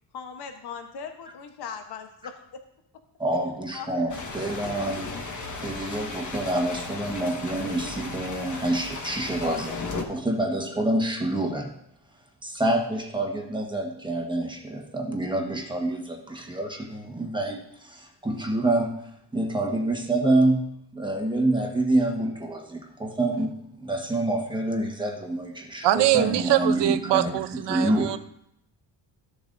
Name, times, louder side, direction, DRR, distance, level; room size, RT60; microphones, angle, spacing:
voice 1, 0.1-2.6 3.7-3.9 4.2-4.3, left 6 dB, 65° left, 6 dB, 1.1 m, -39 dB
voice 2, 3.2-5.2 5.5-11.7 12.4-27.4 27.7-28.2, right 1 dB, 10° right, 2 dB, 1.3 m, -27 dB
sound 1, 4.1-10.0, left 3 dB, 45° left, 1.4 m, -36 dB
voice 3, 25.8-28.2, right 14 dB, 75° right, 11 dB, 0.7 m, -23 dB
14.0 x 7.1 x 2.6 m, 0.75 s
cardioid pair, 110°, 42 cm